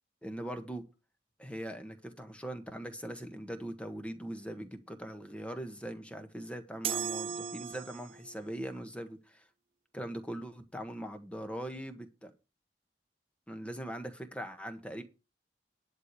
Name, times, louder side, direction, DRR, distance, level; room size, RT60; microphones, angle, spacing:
voice 1, 0.2-0.8 1.4-9.4 9.9-12.3 13.5-15.0, right 1 dB, 5° left, 8 dB, 1.4 m, -41 dB
sound 1, 6.8-8.3, right 7 dB, 30° right, 0.5 m, -36 dB
11.0 x 4.8 x 8.3 m, 0.30 s
head